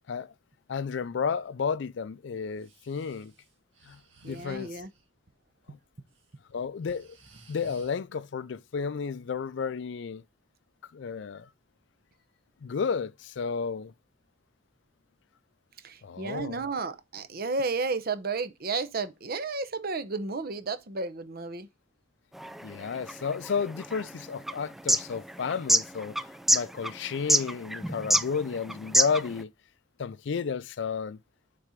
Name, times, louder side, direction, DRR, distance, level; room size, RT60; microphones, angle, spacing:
voice 1, 0.7-3.3 3.9-4.8 5.7-5.8 6.5-7.2 7.5-10.2 10.9-11.5 12.6-13.9 16.0-16.6 22.6-29.5 30.0-31.2, left 6 dB, 65° left, 0.4 m, -32 dB
Breathing, 2.5-5.0 5.9-6.2 6.6-7.9, right 3 dB, 85° right, 2.0 m, -56 dB
voice 2, 4.2-4.9 15.8-21.7, right 4 dB, 50° right, 0.8 m, -32 dB
sound 1, 22.4-29.4, right 1 dB, ahead, 0.3 m, -26 dB
6.7 x 4.2 x 5.0 m
head